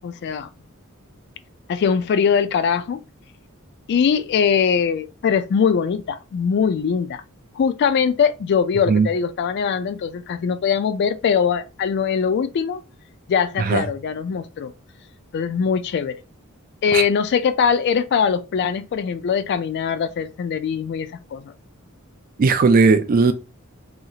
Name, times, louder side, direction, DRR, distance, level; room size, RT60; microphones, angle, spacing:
voice 1, 0.0-0.5 1.7-3.0 3.9-7.2 7.6-12.8 13.3-14.7 15.3-16.2 16.8-21.5, left 6 dB, 50° left, 0.3 m, -21 dB
voice 2, 22.4-23.3, right 4 dB, 40° right, 0.3 m, -16 dB
2.8 x 2.4 x 2.7 m
head